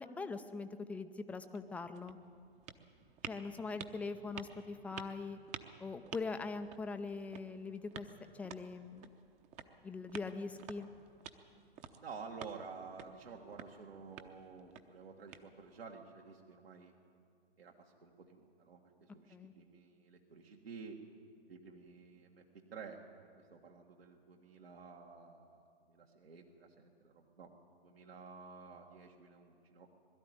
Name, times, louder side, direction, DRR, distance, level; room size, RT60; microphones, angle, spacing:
voice 1, 0.0-2.2 3.3-5.4 5.8-8.1 8.3-9.1 9.8-10.9 19.3-19.5, left 4 dB, 5° left, 9 dB, 0.5 m, -42 dB
sound 1, 1.4-15.9, right 8 dB, 20° right, 0.9 m, -53 dB
voice 2, 12.0-17.0 17.6-21.0 21.5-27.5 27.8-29.9, right 5 dB, 70° right, 0 dB, 1.8 m, -52 dB
21.5 x 13.0 x 9.5 m, 2.3 s
figure-of-eight pair, 115°, 31 cm